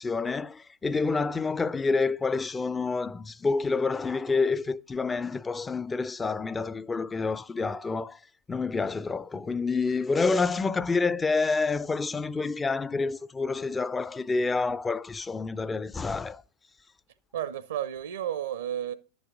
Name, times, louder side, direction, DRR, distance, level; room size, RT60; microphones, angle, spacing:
voice 1, 0.0-8.2 8.5-16.4, left 4 dB, 15° left, 0.4 m, -28 dB
voice 2, 17.3-18.9, right 10 dB, 65° right, 0.6 m, -32 dB
11.0 x 7.2 x 3.7 m
figure-of-eight pair, 90°, 0 cm